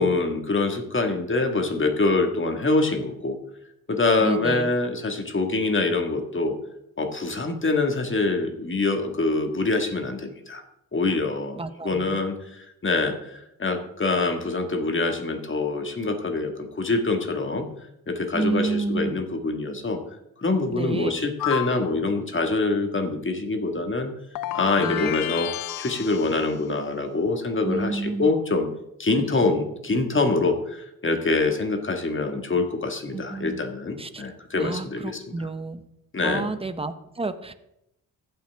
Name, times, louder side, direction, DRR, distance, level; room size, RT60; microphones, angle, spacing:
voice 1, 0.0-3.3 3.9-6.5 7.0-10.6 10.9-11.6 11.8-12.4 12.8-17.7 18.1-20.0 20.4-24.1 24.5-25.5 25.8-28.7 29.0-35.5 36.1-36.5, left 3 dB, 35° left, 5 dB, 1.6 m, -25 dB
voice 2, 4.2-4.7 11.5-12.2 18.3-19.1 20.7-21.1 24.8-25.1 27.6-28.3 29.3-29.5 33.1-33.7 34.0-34.2 34.6-35.8 36.2-37.5, right 3 dB, 15° right, 11 dB, 0.8 m, -30 dB
sound 1, 21.4-21.9 24.3-26.5, left 13 dB, 65° left, 0.5 m, -30 dB
15.0 x 5.8 x 3.4 m, 0.82 s
cardioid pair, 65°, 36 cm